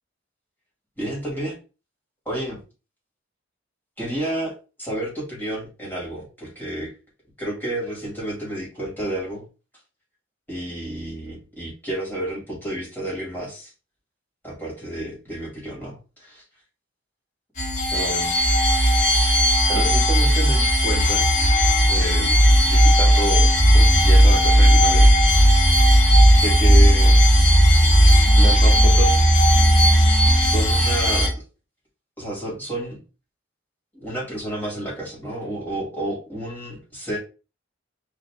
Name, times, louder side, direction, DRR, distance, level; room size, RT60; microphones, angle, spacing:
voice 1, 1.0-1.6 2.3-2.6 4.0-4.5 4.8-6.9 7.4-9.4 10.5-13.7 14.4-16.4 17.9-18.3 19.7-21.3 21.9-25.1 26.3-27.2 28.4-29.2 30.4-31.4 32.2-33.0 33.9-37.2, right 1 dB, 10° left, -5 dB, 2.5 m, -30 dB
sound 1, 17.6-31.3, equal, 45° left, 1.8 m, -15 dB
4.7 x 2.7 x 3.7 m, 0.32 s
head